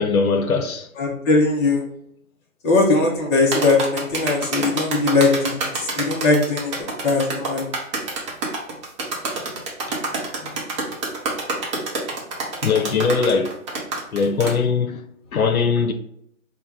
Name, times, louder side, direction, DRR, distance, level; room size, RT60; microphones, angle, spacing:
voice 1, 0.0-0.9 9.9-10.1 10.4-10.5 12.6-13.5 14.1-15.0 15.3-15.9, left 5 dB, 85° left, 0.7 m, -21 dB
voice 2, 1.0-1.8 2.6-5.5 5.9-6.7 7.0-7.7, left 3 dB, 20° left, 0.6 m, -19 dB
sound 1, 3.5-14.6, right 3 dB, 20° right, 0.7 m, -27 dB
4.4 x 2.2 x 3.4 m
figure-of-eight pair, 130°, 42 cm